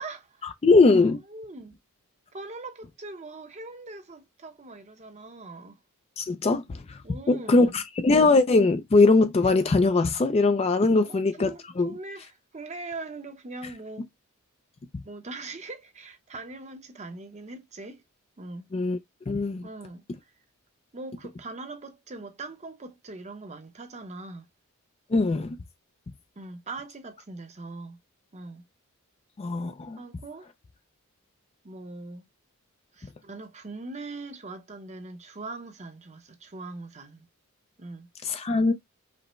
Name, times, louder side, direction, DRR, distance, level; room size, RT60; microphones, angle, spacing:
voice 1, 0.0-0.5 0.9-1.8 2.3-5.8 7.0-7.8 11.0-14.1 15.0-18.0 18.4-18.7 19.6-20.3 20.9-24.5 26.4-28.0 28.3-28.6 30.0-30.5 31.6-32.2 32.9-37.3 37.8-38.1, right 3 dB, 30° right, 0.7 m, -41 dB
voice 2, 0.6-1.2 6.2-7.0 7.3-11.9 18.7-19.0 19.3-19.6 25.1-25.6 29.4-30.0 38.2-38.7, left 3 dB, 25° left, 0.3 m, -21 dB
5.2 x 2.1 x 2.9 m
head